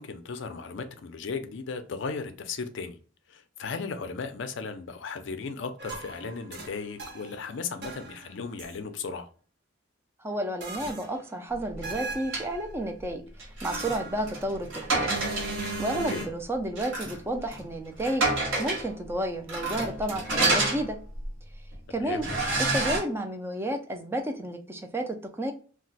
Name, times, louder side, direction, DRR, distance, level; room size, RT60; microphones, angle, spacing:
voice 1, 0.0-3.0 3.3-9.3 15.9-16.3 21.9-22.3, left 4 dB, 65° left, 0.4 m, -36 dB
sound 1, 5.8-7.4 7.8-8.7 10.6-11.3 11.8-12.7 13.6-14.5 15.1-16.2, right 2 dB, 55° right, 0.7 m, -38 dB
voice 2, 10.2-13.2 13.6-15.2 15.8-18.3 18.6-21.0 21.9-22.3 22.6-25.5, right 1 dB, 10° right, 0.3 m, -31 dB
sound 2, 11.7-12.5 13.4-15.7 16.1-16.2 16.8-17.2 17.5-17.6 18.0-18.9 19.5-21.3 21.7-21.8 22.2-23.0, right 2 dB, 75° right, 1.1 m, -29 dB
2.3 x 2.1 x 3.9 m
head